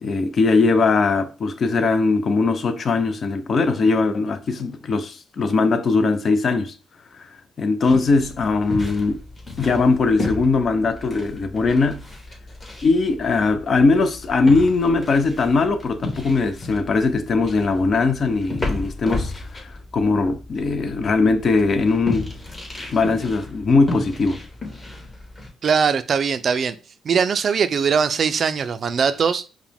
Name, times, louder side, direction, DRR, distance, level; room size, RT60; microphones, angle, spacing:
voice 1, 0.0-6.7 7.6-9.2 9.6-12.0 12.8-19.3 19.9-22.3 22.9-24.4, left 3 dB, 45° left, 0.5 m, -20 dB
sound 1, 7.8-25.5, left 2 dB, 30° left, 1.5 m, -34 dB
voice 2, 25.6-26.8 27.0-29.5, right 6 dB, 50° right, 0.3 m, -21 dB
4.8 x 2.1 x 3.4 m
cardioid pair, 90°, 0 cm